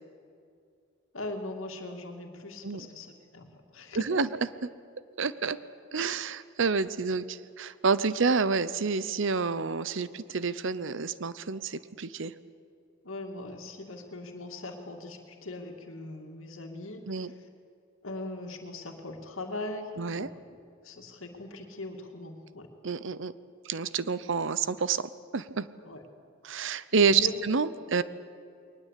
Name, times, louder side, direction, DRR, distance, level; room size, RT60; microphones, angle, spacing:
voice 1, 1.1-4.1 13.0-17.4 18.0-20.3 20.8-22.7 25.8-26.0 26.9-27.3, left 2 dB, 80° left, 3 dB, 2.4 m, -40 dB
voice 2, 3.9-4.3 5.2-5.6 5.9-12.3 17.1-17.3 20.0-20.3 22.8-23.3 23.6-25.0 25.3-25.7 26.4-28.0, right 5 dB, 65° right, 16 dB, 0.8 m, -28 dB
21.5 x 19.5 x 8.4 m, 2.4 s
head